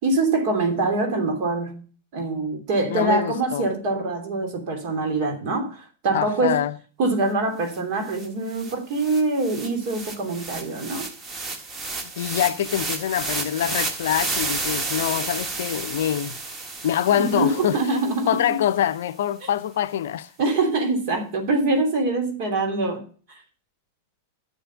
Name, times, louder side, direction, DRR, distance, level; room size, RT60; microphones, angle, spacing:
voice 1, 0.0-1.8 2.1-6.6 7.0-11.1 17.2-18.6 20.4-23.0, right 3 dB, 45° right, 3.0 m, -24 dB
voice 2, 2.9-3.7 6.1-6.8 12.2-16.4 16.8-17.8 18.3-20.3, left 10 dB, 60° left, 0.6 m, -24 dB
sound 1, 7.8-7.9 8.1-18.5, right 3 dB, 25° right, 1.7 m, -32 dB
10.0 x 7.2 x 6.9 m
figure-of-eight pair, 90°, 0 cm